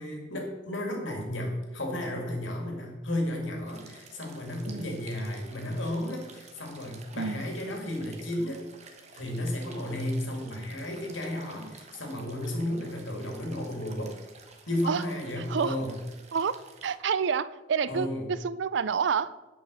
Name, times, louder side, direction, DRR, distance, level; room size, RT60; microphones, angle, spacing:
voice 1, 0.0-8.6 9.1-14.1 14.7-15.9 17.9-18.3, left 1 dB, 70° left, 1 dB, 2.4 m, -33 dB
sound 1, 3.6-17.0, right 4 dB, 35° right, 1.2 m, -52 dB
voice 2, 4.7-5.0 7.1-7.4 14.9-15.0 15.4-15.8 16.3-19.3, right 6 dB, 60° right, 17 dB, 0.4 m, -29 dB
9.8 x 5.6 x 6.4 m, 1.1 s
head